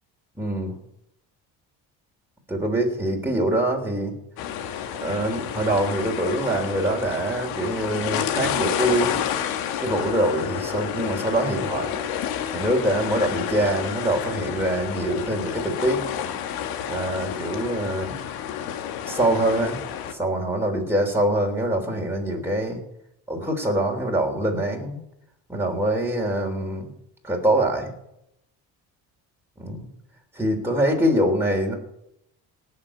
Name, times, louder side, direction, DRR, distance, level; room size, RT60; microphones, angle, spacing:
voice 1, 0.4-0.8 2.5-4.1 5.0-9.2 9.8-11.9 12.5-16.0 16.9-18.2 19.0-19.8 20.1-22.8 23.3-25.0 25.5-26.9 27.2-27.9 29.6-29.9 30.3-31.7, right 1 dB, 5° right, 0 dB, 3.5 m, -24 dB
sound 1, 4.4-20.1, left 9 dB, 85° left, 1.8 m, -30 dB
18.5 x 6.5 x 8.9 m, 0.80 s
cardioid pair, 115°, 36 cm